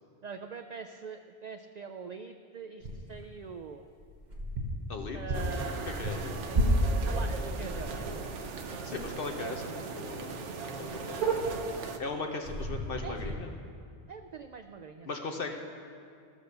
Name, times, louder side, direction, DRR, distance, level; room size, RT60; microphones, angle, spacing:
voice 1, 0.2-3.8 5.1-5.9 6.5-6.7 7.0-8.1 13.0-13.4 14.1-15.5, right 5 dB, 60° right, 7 dB, 0.4 m, -43 dB
sound 1, 2.8-3.3 4.0-8.5 8.9-9.1 9.4-9.5 10.0-10.1 10.3-10.4 10.7-11.9 12.4-13.3, right 1 dB, 40° right, 1.4 m, -32 dB
voice 2, 4.9-5.5 6.0-6.6 8.8-11.4 12.0-13.5 15.1-15.5, left 4 dB, 55° left, 3 dB, 1.0 m, -38 dB
sound 2, 5.3-12.0, right 4 dB, 85° right, 1.1 m, -39 dB
14.0 x 6.7 x 6.7 m, 2.3 s
omnidirectional pair, 1.2 m